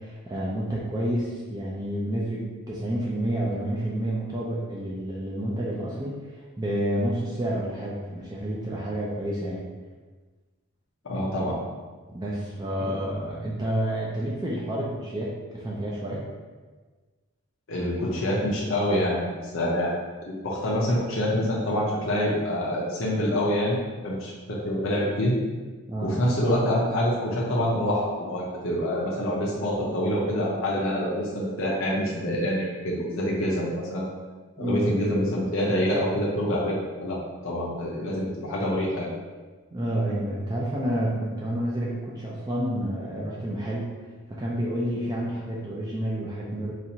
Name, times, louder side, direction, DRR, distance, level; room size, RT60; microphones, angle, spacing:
voice 1, 0.0-9.7 12.1-16.2 25.9-26.1 32.2-32.4 34.6-34.9 39.7-43.9 44.3-46.7, right 1 dB, 20° right, -5 dB, 0.3 m, -29 dB
voice 2, 11.0-11.6 12.8-13.0 17.7-20.0 20.3-23.8 24.0-25.3 26.0-34.0 34.6-39.1, equal, 65° left, -5 dB, 0.6 m, -26 dB
4.1 x 2.4 x 2.8 m, 1.4 s
head